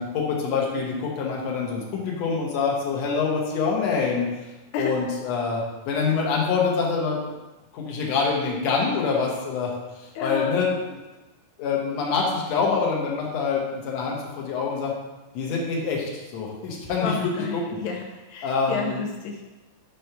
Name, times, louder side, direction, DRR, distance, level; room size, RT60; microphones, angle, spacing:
voice 1, 0.0-4.3 4.8-7.2 7.7-9.7 10.0-11.0 11.6-14.9 15.3-17.3 18.4-19.0, left 5 dB, 65° left, -2 dB, 1.9 m, -25 dB
voice 2, 10.2-10.7 17.0-19.4, left 5 dB, 90° left, 1 dB, 1.6 m, -31 dB
6.6 x 3.2 x 5.7 m, 1.1 s
omnidirectional pair, 4.1 m